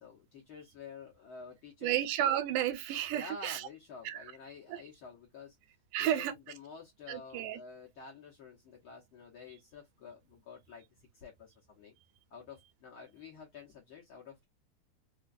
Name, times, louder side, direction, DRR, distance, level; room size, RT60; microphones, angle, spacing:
voice 1, 0.0-2.0 3.1-5.6 6.0-11.9 12.3-14.4, left 5 dB, 70° left, 1.2 m, -50 dB
voice 2, 1.8-3.7 4.1-4.3 4.7-4.8 5.9-6.3 7.1-7.6, right 11 dB, 90° right, 2.2 m, -32 dB
4.8 x 2.3 x 2.5 m
omnidirectional pair, 3.6 m